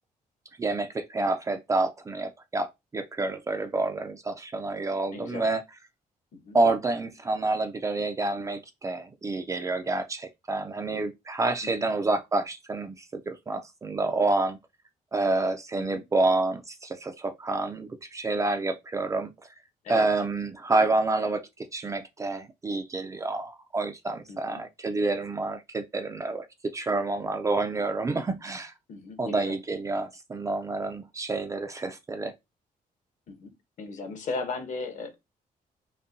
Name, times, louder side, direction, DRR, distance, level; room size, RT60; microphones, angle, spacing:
voice 1, 0.6-5.6 6.5-14.6 15.1-19.3 19.9-26.5 26.7-28.7 29.2-32.3, right 2 dB, 20° right, 0.4 m, -28 dB
voice 2, 5.1-5.5 6.3-6.6 11.6-11.9 15.8-16.0 19.8-20.1 24.3-24.6 28.9-29.6 33.3-33.5 33.8-35.2, left 3 dB, 60° left, 1.0 m, -37 dB
5.2 x 2.1 x 2.6 m
wide cardioid pair, 170°, 15 cm